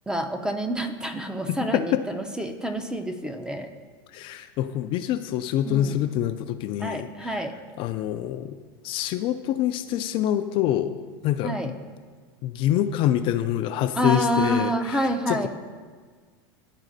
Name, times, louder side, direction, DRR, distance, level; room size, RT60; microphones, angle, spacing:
voice 1, 0.1-3.7 5.6-6.0 6.8-7.5 11.4-11.7 14.0-15.5, equal, 5° right, 6 dB, 0.5 m, -27 dB
voice 2, 1.5-2.0 4.1-7.4 7.8-8.6 8.8-10.9 11.2-11.7 12.4-15.5, left 11 dB, 50° left, 8 dB, 0.3 m, -26 dB
12.0 x 4.0 x 2.6 m, 1.5 s
supercardioid pair, 110°, 12 cm